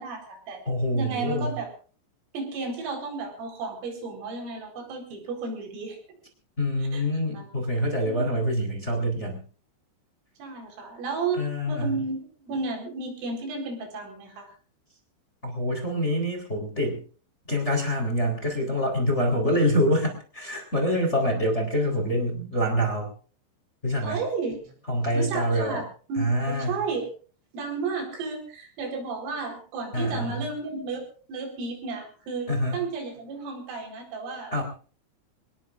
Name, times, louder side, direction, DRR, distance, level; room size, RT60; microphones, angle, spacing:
voice 1, 0.0-0.6 0.9-1.7 2.3-6.0 6.9-7.0 7.3-7.5 8.0-8.3 10.4-11.4 11.7-14.5 19.3-19.6 24.0-24.7 25.1-25.8 26.1-27.1 27.5-31.0 31.3-34.5, right 4 dB, 80° right, 3 dB, 7.0 m, -33 dB
voice 2, 0.7-1.5 6.6-9.4 11.3-12.0 15.4-17.0 17.5-23.1 23.8-24.2 24.9-25.8 26.2-26.8 29.9-30.5 32.5-32.8 34.5-34.6, equal, 15° left, 3 dB, 3.5 m, -26 dB
25.5 x 20.0 x 2.6 m, 0.40 s
omnidirectional pair, 5.8 m